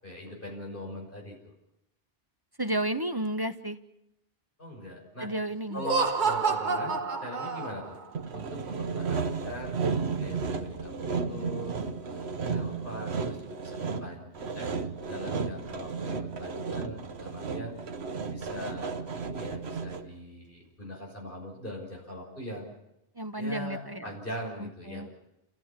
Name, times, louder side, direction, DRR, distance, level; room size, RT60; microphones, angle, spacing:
voice 1, 0.0-1.5 4.6-5.3 5.7-8.0 8.3-9.8 10.2-14.7 15.1-17.8 18.3-18.9 19.2-22.7 23.4-25.1, equal, 55° left, -1 dB, 6.5 m, -41 dB
voice 2, 2.6-3.8 5.2-5.8 23.2-24.0 24.6-25.1, right 1 dB, 25° right, 9 dB, 0.8 m, -32 dB
Laughter, 5.7-8.0, right 4 dB, 50° right, 1.3 m, -28 dB
Sawing, 8.2-20.2, right 5 dB, 80° right, 1.3 m, -33 dB
29.5 x 15.0 x 7.4 m, 0.86 s
omnidirectional pair, 1.1 m